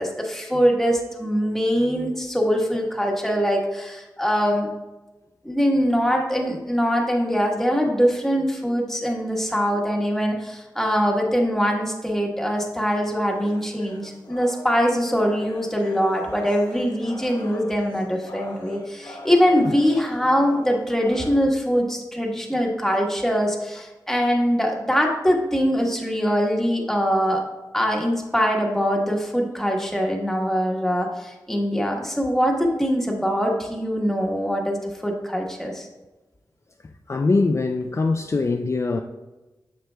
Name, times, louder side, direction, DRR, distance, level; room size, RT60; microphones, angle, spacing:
voice 1, 0.0-4.7 5.4-27.4 27.7-35.9, equal, 5° left, 1.3 m, -23 dB
sound 1, 13.3-21.3, left 1 dB, 70° left, 1.4 m, -41 dB
voice 2, 37.1-39.0, left 3 dB, 40° left, 0.4 m, -22 dB
7.6 x 6.7 x 2.2 m
wide cardioid pair, 70°, 8 cm